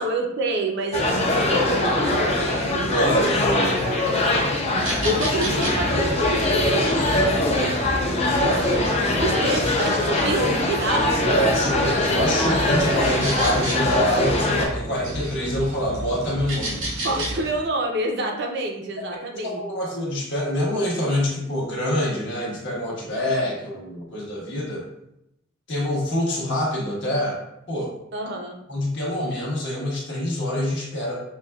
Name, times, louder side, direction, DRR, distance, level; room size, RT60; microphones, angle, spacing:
voice 1, 0.0-2.9 4.1-4.5 5.0-8.6 9.2-11.1 17.0-19.6 28.1-28.6, right 1 dB, 55° right, 1 dB, 0.6 m, -27 dB
sound 1, 0.9-14.7, left 1 dB, 30° left, 0.5 m, -22 dB
voice 2, 2.9-3.6 11.2-16.9 19.3-24.8 25.7-27.4 27.7-27.9 28.7-31.2, equal, 60° left, -5 dB, 1.3 m, -25 dB
sound 2, 4.8-17.5, right 1 dB, 80° right, 1.1 m, -33 dB
6.1 x 2.2 x 2.3 m, 0.82 s
head